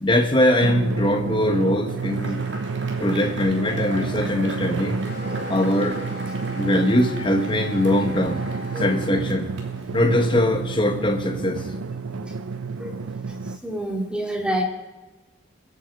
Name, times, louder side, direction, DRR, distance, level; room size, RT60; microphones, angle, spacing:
voice 1, 0.0-2.4 3.0-5.0 5.5-6.0 6.6-8.4 8.8-9.5 9.9-11.6, left 1 dB, 25° left, 6 dB, 1.4 m, -21 dB
Drum, 0.6-13.6, right 4 dB, 90° right, 0.6 m, -30 dB
Cheering / Applause / Crowd, 1.9-10.6, right 1 dB, 60° right, 2.9 m, -39 dB
sound 1, 5.0-9.1, equal, 45° left, 3.6 m, -38 dB
voice 2, 13.6-14.6, right 1 dB, 5° right, 0 dB, 2.3 m, -27 dB
24.0 x 8.9 x 4.7 m, 1.1 s
head